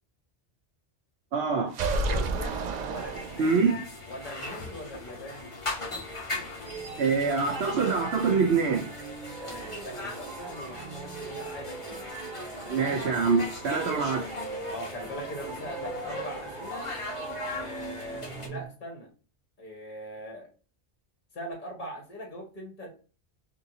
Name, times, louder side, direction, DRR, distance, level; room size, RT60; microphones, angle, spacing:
voice 1, 1.3-1.7 3.4-3.8 7.0-8.9 12.7-14.3, right 5 dB, 75° right, 0.9 m, -25 dB
sound 1, 1.7-3.8, right 2 dB, 55° right, 0.5 m, -30 dB
voice 2, 2.1-2.6 2.8-3.6 4.0-5.5 9.4-12.1 12.6-13.0 14.7-16.9 17.5-19.1 19.6-20.5 21.3-22.9, equal, 50° left, 1.5 m, -41 dB
sound 2, 2.9-18.5, left 2 dB, 30° left, 1.0 m, -39 dB
sound 3, 6.6-18.7, right 4 dB, 30° right, 0.8 m, -41 dB
3.7 x 2.7 x 2.7 m
omnidirectional pair, 1.1 m